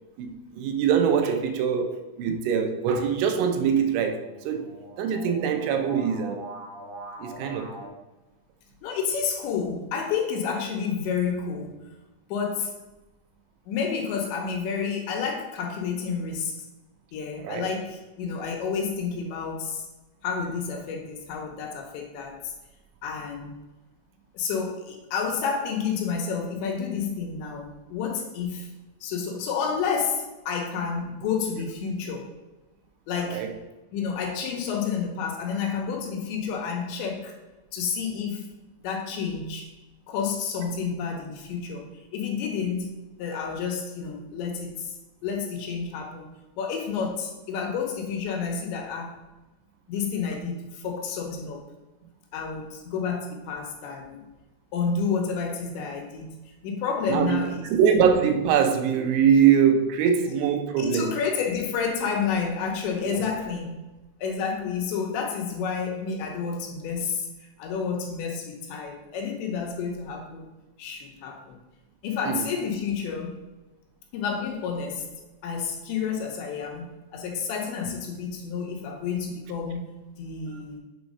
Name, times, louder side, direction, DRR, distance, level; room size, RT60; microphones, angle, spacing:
voice 1, 0.2-4.7 5.0-6.4 7.2-7.9 17.4-17.7 33.2-33.5 57.1-61.2 63.1-63.2 72.3-72.4, right 7 dB, 85° right, 3.1 m, -23 dB
sound 1, 2.5-7.9, right 1 dB, 50° right, 0.9 m, -44 dB
voice 2, 8.8-11.7 12.3-12.8 13.7-16.6 17.1-19.8 20.2-22.5 23.0-23.6 24.3-28.7 29.0-32.3 33.1-33.5 33.9-37.4 37.7-38.5 38.8-39.7 40.1-41.9 42.1-42.9 43.2-44.9 45.2-46.3 46.6-49.1 49.9-51.6 52.3-54.3 54.7-56.4 56.6-57.6 60.8-63.8 64.2-70.5 70.8-71.6 72.0-73.4 74.1-75.1 75.4-80.8, left 6 dB, 80° left, 3.1 m, -30 dB
7.2 x 4.3 x 5.3 m
omnidirectional pair, 5.4 m